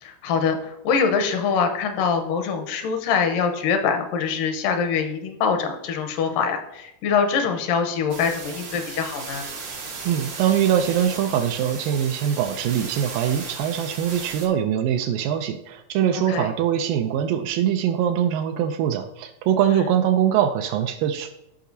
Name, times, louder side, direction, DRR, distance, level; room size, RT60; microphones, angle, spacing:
voice 1, 0.0-9.4 16.1-16.5 19.7-19.8, left 6 dB, 85° left, 6 dB, 2.5 m, -24 dB
sound 1, 8.1-14.5, right 4 dB, 70° right, 1.0 m, -36 dB
voice 2, 10.0-21.3, right 9 dB, 85° right, 5 dB, 2.2 m, -22 dB
13.0 x 4.9 x 2.7 m, 0.87 s
omnidirectional pair, 3.8 m